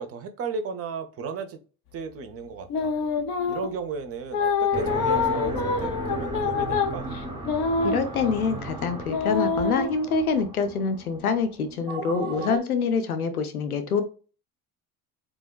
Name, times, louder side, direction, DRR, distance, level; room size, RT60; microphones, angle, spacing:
voice 1, 0.0-1.6 1.9-2.9 3.5-7.1, right 5 dB, 35° right, 0.6 m, -34 dB
sound 1, 2.7-3.8 4.3-8.6 9.1-9.9, left 5 dB, 55° left, 0.7 m, -26 dB
sound 2, 4.7-12.6, right 2 dB, 10° right, 0.8 m, -35 dB
voice 2, 7.8-14.0, left 5 dB, 90° left, 0.6 m, -26 dB
3.4 x 2.1 x 2.3 m
figure-of-eight pair, 65°, 42 cm